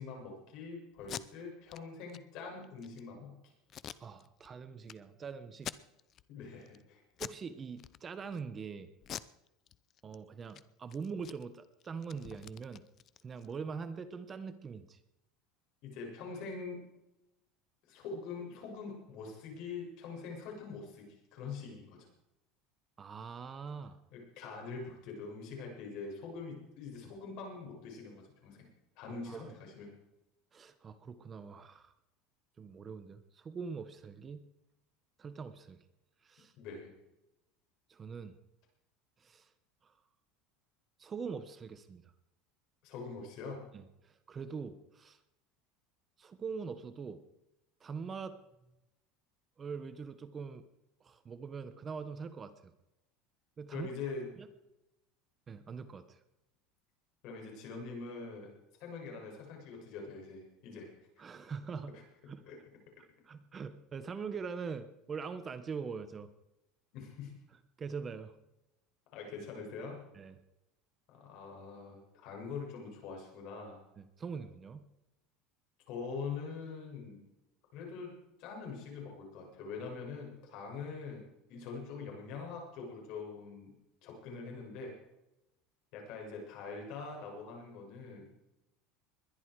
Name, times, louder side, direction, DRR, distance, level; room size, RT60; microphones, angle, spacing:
voice 1, 0.0-3.5 6.3-7.0 15.8-16.8 17.9-22.0 24.1-28.7 29.0-29.9 36.6-36.9 42.8-43.6 53.7-54.3 57.2-58.5 58.8-60.9 61.9-62.0 62.4-62.6 66.9-67.3 69.1-70.0 71.1-73.8 75.9-77.2 77.7-83.7 84.0-84.9 85.9-88.3, left 4 dB, 60° left, 1 dB, 6.9 m, -44 dB
Packing tape duct tape, 1.0-1.2 1.7-1.8 2.1-2.2 2.6-3.0 3.7-4.5 4.9-5.0 5.5-6.2 6.6-6.8 7.1-7.4 7.8-8.4 9.0-10.2 10.4-10.6 10.9-13.5, left 10 dB, 35° left, 0.6 m, -45 dB
voice 2, 4.0-5.7 7.2-8.9 10.0-12.8 13.2-15.0 23.0-24.0 29.3-29.5 30.5-31.9 32.6-34.5 35.2-35.8 36.2-36.5 37.9-38.4 39.2-39.5 39.8-39.9 41.0-42.1 43.7-45.2 46.2-47.2 47.8-48.4 49.6-50.6 51.0-52.7 53.6-53.9 54.4-54.5 55.5-56.2 61.2-62.0 62.3-62.4 63.3-66.3 67.8-68.4 70.1-70.4 74.0-74.9, right 5 dB, 25° right, 11 dB, 1.0 m, -43 dB
21.5 x 11.0 x 4.7 m, 0.89 s
supercardioid pair, 140°, 0 cm